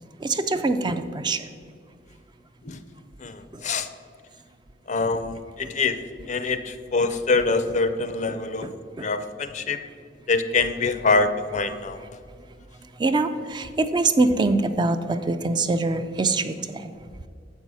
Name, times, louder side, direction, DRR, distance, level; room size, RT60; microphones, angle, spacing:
voice 1, 0.2-1.4 3.5-3.6 8.6-9.1 13.0-16.9, right 3 dB, 25° right, 9 dB, 0.4 m, -24 dB
voice 2, 3.2-3.9 4.9-6.0 6.3-8.7 9.0-9.8 10.3-12.0, left 3 dB, 45° left, 11 dB, 0.5 m, -24 dB
7.2 x 5.4 x 6.1 m, 2.1 s
head